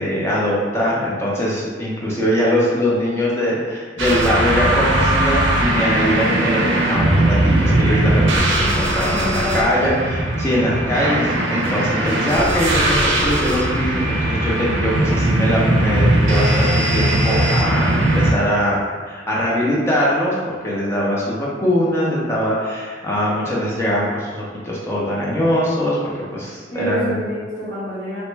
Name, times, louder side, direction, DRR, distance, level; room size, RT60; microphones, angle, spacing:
voice 1, 0.0-18.8 19.1-26.0 26.3-27.2, equal, 15° left, -5 dB, 0.5 m, -22 dB
sound 1, 4.0-18.3, right 1 dB, 75° right, 0.4 m, -19 dB
voice 2, 9.0-9.7 18.0-18.3 26.7-28.2, equal, 40° left, -13 dB, 1.1 m, -28 dB
3.0 x 2.1 x 3.2 m, 1.5 s
head